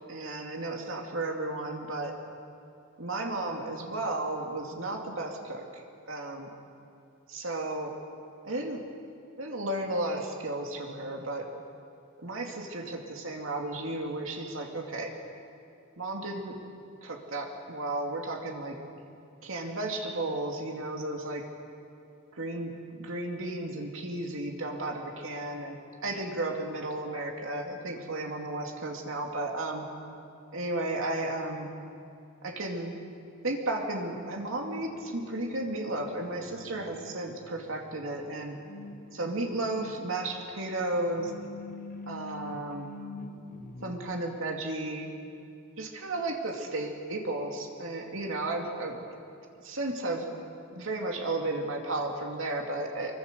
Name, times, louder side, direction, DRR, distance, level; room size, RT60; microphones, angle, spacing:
voice 1, 0.1-2.2 3.0-5.7 6.1-6.5 7.3-8.0 8.4-8.8 9.4-11.5 12.2-15.1 16.0-16.6 17.0-18.8 19.4-21.5 22.3-22.7 23.0-29.8 30.5-31.7 32.4-32.9 33.4-38.6 39.1-41.3 42.1-42.9 43.8-45.1 45.8-49.0 49.6-50.3 50.7-53.1, right 2 dB, 70° right, 2 dB, 2.6 m, -33 dB
sound 1, 34.8-44.2, left 2 dB, 45° left, 1.0 m, -46 dB
25.5 x 23.5 x 6.9 m, 2.5 s
head